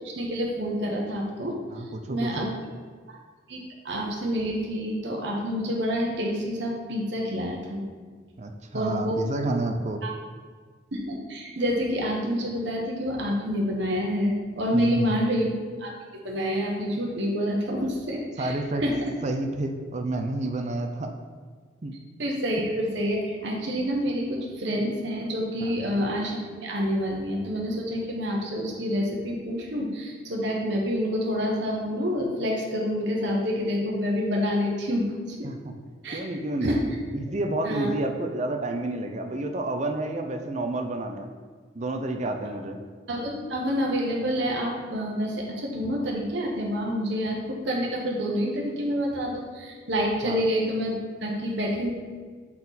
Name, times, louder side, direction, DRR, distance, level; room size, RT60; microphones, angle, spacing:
voice 1, 0.0-1.6 2.1-2.5 3.1-3.2 3.5-7.9 8.7-9.2 10.0-10.1 10.9-15.5 15.8-15.9 16.2-18.5 18.8-18.9 22.2-35.4 36.0-36.2 36.6-36.8 37.6-37.9 43.1-50.9 51.2-51.9, equal, 60° right, -2 dB, 1.1 m, -28 dB
voice 2, 1.7-2.5 8.4-10.0 14.7-15.1 18.4-18.8 19.2-21.1 21.8-22.0 25.6-25.9 35.4-35.7 36.1-41.3 41.7-42.8 50.2-50.5, right 2 dB, 35° right, 4 dB, 0.6 m, -30 dB
8.6 x 4.3 x 4.1 m, 1.6 s
head